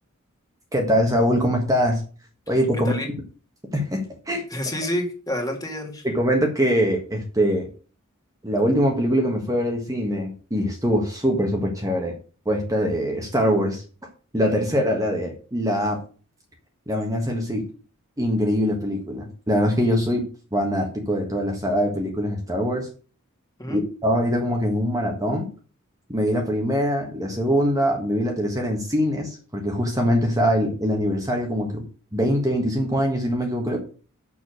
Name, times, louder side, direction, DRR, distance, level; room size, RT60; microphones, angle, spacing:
voice 1, 0.7-2.0 2.5-3.2 3.7-4.7 6.0-7.7 8.4-12.1 12.4-13.8 14.3-16.0 16.9-17.7 18.2-20.2 20.5-22.9 23.7-25.5 26.1-31.8 32.1-33.8, equal, 15° right, 1 dB, 1.6 m, -23 dB
voice 2, 4.5-6.0 23.6-23.8, left 1 dB, 15° left, 2 dB, 2.4 m, -28 dB
7.1 x 7.0 x 6.5 m, 0.37 s
head